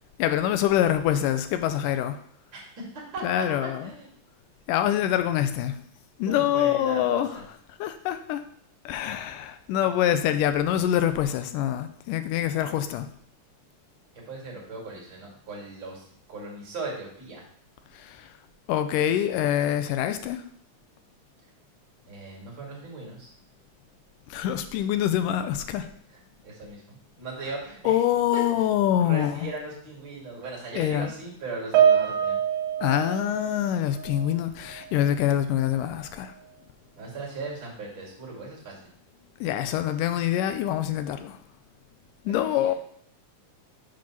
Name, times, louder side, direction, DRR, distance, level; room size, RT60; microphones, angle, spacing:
voice 1, 0.2-2.2 3.2-3.9 4.7-5.8 6.2-7.4 7.8-8.4 8.9-13.1 17.9-18.3 18.7-20.4 24.3-25.9 27.9-29.5 30.8-31.1 32.8-36.3 39.4-41.4 42.3-42.7, left 11 dB, 85° left, 9 dB, 2.2 m, -25 dB
voice 2, 2.5-3.4 3.8-4.1 6.3-7.4 12.5-12.8 14.3-17.4 22.1-23.3 26.4-28.0 28.3-28.4 29.0-32.4 36.9-38.8 42.3-42.8, right 3 dB, 35° right, -4 dB, 2.9 m, -38 dB
Piano, 31.7-34.4 34.6-35.0 35.8-35.9, right 8 dB, 80° right, 2.1 m, -25 dB
7.5 x 3.8 x 5.9 m, 0.63 s
omnidirectional pair, 3.8 m